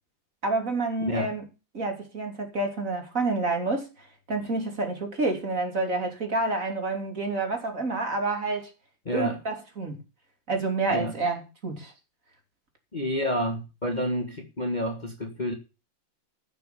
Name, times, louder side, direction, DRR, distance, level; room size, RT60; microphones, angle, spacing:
voice 1, 0.4-1.4 1.7-3.9 4.3-8.7 9.1-10.0 10.5-11.9, right 3 dB, 45° right, 3.5 m, -28 dB
voice 2, 1.0-1.3 9.1-9.4 10.9-11.2 12.9-15.5, equal, 25° left, 1.8 m, -29 dB
14.5 x 6.8 x 6.9 m
omnidirectional pair, 2.0 m